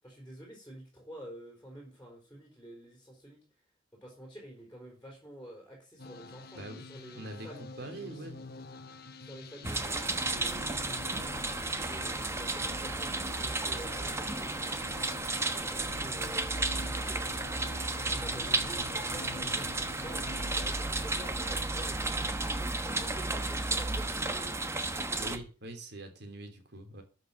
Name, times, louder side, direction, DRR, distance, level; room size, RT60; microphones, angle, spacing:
voice 1, 0.0-3.4 3.9-8.4 9.2-11.0 11.7-15.2 15.4-17.6 17.9-24.6 24.9-25.4, right 1 dB, 10° left, -1 dB, 4.1 m, -49 dB
sound 1, 6.0-20.7, left 3 dB, 55° left, 1.3 m, -47 dB
voice 2, 7.1-7.5 7.8-8.4 9.6-9.8 25.2-27.0, right 1 dB, 55° right, 6 dB, 3.1 m, -43 dB
sound 2, 9.6-25.4, right 2 dB, 15° right, 1.0 m, -33 dB
13.0 x 6.1 x 6.3 m, 0.34 s
head